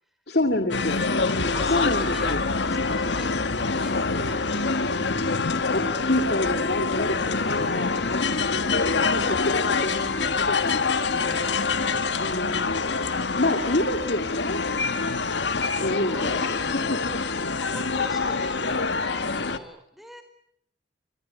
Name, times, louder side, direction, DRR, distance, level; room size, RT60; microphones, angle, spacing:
voice 1, 0.3-1.0 1.6-2.4 5.7-8.2 8.8-11.4 12.2-12.7 13.3-14.6 15.7-17.2, left 1 dB, 65° left, 6 dB, 2.4 m, -28 dB
sound 1, 0.7-19.6, left 4 dB, 85° left, 1.7 m, -25 dB
voice 2, 1.3-2.3 2.7-5.3 7.4-8.5 11.3-11.8 15.0-15.3 15.9-16.8 17.3-20.2, equal, ahead, 7 dB, 4.4 m, -45 dB
25.5 x 21.5 x 9.7 m, 0.71 s
head